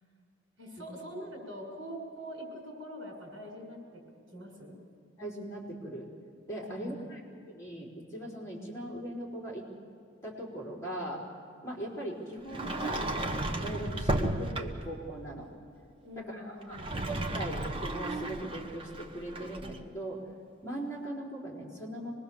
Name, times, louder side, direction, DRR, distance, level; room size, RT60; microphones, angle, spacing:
voice 1, 0.6-4.0 4.3-4.8 6.7-7.0 16.0-16.9, equal, 65° right, 0 dB, 6.9 m, -44 dB
voice 2, 5.2-6.1 6.5-9.7 10.2-11.2 11.6-13.0 13.6-15.5 16.2-20.2 20.6-22.1, right 1 dB, 15° left, -4 dB, 4.3 m, -40 dB
Sliding door, 12.5-15.0 16.6-19.8, right 1 dB, 25° right, 1.1 m, -34 dB
25.0 x 20.5 x 7.2 m, 2.4 s
head